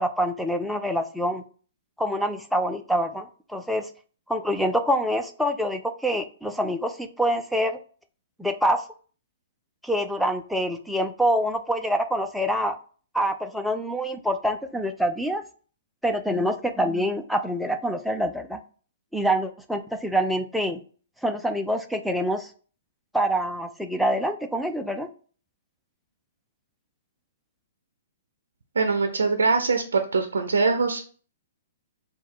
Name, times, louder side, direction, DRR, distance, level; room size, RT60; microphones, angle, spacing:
voice 1, 0.0-1.4 2.0-3.9 4.3-7.8 8.4-8.8 9.8-12.8 13.1-15.4 16.0-18.6 19.1-20.8 21.2-22.5 23.1-25.1, equal, ahead, 4 dB, 0.4 m, -26 dB
voice 2, 28.8-31.0, right 4 dB, 85° right, 6 dB, 0.5 m, -23 dB
3.6 x 2.3 x 4.4 m, 0.40 s
hypercardioid pair, 130°, 0 cm